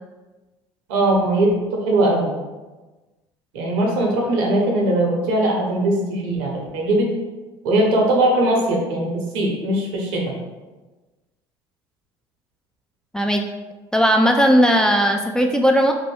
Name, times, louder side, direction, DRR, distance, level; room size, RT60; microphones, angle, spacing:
voice 1, 0.9-2.3 3.5-7.1 7.6-10.2, right 1 dB, 75° right, 0 dB, 0.8 m, -20 dB
voice 2, 13.1-13.4 13.9-15.9, equal, 5° left, 3 dB, 0.3 m, -17 dB
2.6 x 2.5 x 3.2 m, 1.2 s
hypercardioid pair, 70°, 12 cm